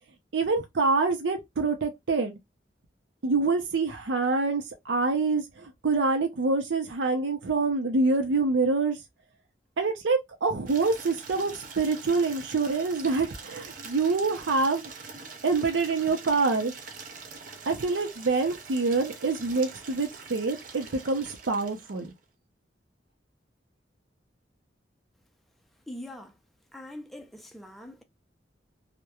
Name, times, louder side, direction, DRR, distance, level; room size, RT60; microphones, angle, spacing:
voice 1, 0.3-2.4 3.2-9.0 9.8-14.9 15.4-16.7 17.7-22.1, right 3 dB, 90° right, 0.5 m, -26 dB
Water tap faucet / Liquid, 10.7-22.2, right 4 dB, 50° right, 0.6 m, -44 dB
voice 2, 25.9-26.4 26.7-28.0, left 1 dB, ahead, 0.4 m, -42 dB
2.9 x 2.1 x 2.3 m
head